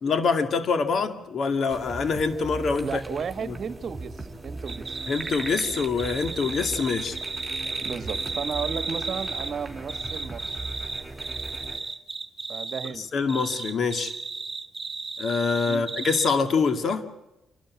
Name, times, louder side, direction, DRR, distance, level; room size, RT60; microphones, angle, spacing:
voice 1, 0.0-3.0 3.4-3.6 5.1-7.2 12.9-14.1 15.2-17.1, left 5 dB, 55° left, 9 dB, 2.2 m, -25 dB
sound 1, 1.7-11.8, right 2 dB, 10° right, 4.2 m, -39 dB
voice 2, 2.8-5.0 7.7-10.6 12.5-13.1 15.7-15.8, right 6 dB, 50° right, 12 dB, 1.5 m, -34 dB
sound 2, 4.7-9.5 9.9-12.9 13.3-16.3, right 3 dB, 30° right, 1.9 m, -34 dB
28.0 x 12.5 x 9.7 m, 0.94 s
cardioid pair, 90°, 0 cm